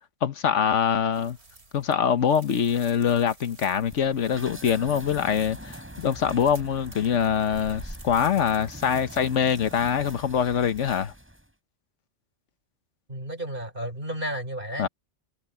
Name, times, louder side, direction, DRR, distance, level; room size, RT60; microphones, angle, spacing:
voice 1, 0.2-1.4 1.7-11.1 14.8-14.9, left 8 dB, 85° left, 1.4 m, -24 dB
sound 1, 1.1-11.0, right 2 dB, 65° right, 3.5 m, -51 dB
sound 2, 3.8-11.5, equal, 10° right, 4.3 m, -43 dB
voice 2, 13.1-14.9, equal, 45° right, 3.7 m, -32 dB
omnidirectional pair, 1.2 m